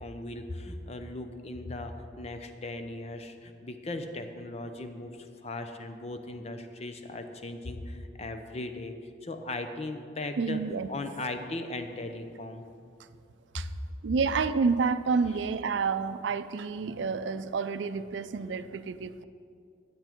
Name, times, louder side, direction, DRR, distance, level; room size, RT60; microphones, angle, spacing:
voice 1, 0.0-8.9 9.2-10.6 10.9-12.6 13.5-13.6, left 2 dB, 35° left, 7 dB, 0.6 m, -38 dB
voice 2, 10.4-10.9 13.5-13.7 14.0-19.2, right 5 dB, 85° right, 12 dB, 0.4 m, -29 dB
10.0 x 8.2 x 4.4 m, 2.3 s
head